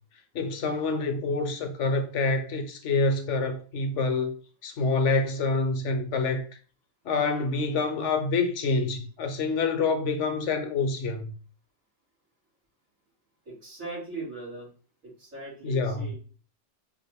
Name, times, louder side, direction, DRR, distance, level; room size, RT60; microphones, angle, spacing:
voice 1, 0.3-4.3 4.6-6.5 7.0-11.3 15.6-16.1, left 3 dB, 65° left, 1.0 m, -27 dB
voice 2, 13.4-14.7 15.0-16.1, right 3 dB, 85° right, 3.0 m, -39 dB
5.2 x 2.5 x 3.4 m
omnidirectional pair, 1.4 m